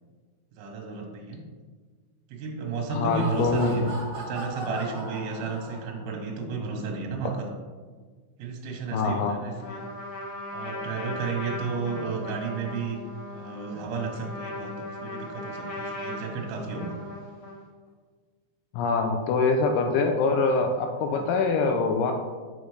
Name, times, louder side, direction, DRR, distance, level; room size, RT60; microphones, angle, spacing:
voice 1, 0.5-1.4 2.3-3.8 4.2-7.5 8.4-9.8 10.5-13.0 13.3-17.0 21.1-21.3, right 4 dB, 75° right, 1 dB, 2.5 m, -33 dB
voice 2, 2.9-3.9 8.9-9.3 18.7-22.1, left 4 dB, 85° left, 4 dB, 2.7 m, -24 dB
Laughter, 2.9-6.2, right 1 dB, 55° right, 1.9 m, -38 dB
Trumpet, 9.6-17.7, left 1 dB, 65° left, 2.7 m, -38 dB
7.0 x 5.0 x 3.2 m, 1.5 s
omnidirectional pair, 5.4 m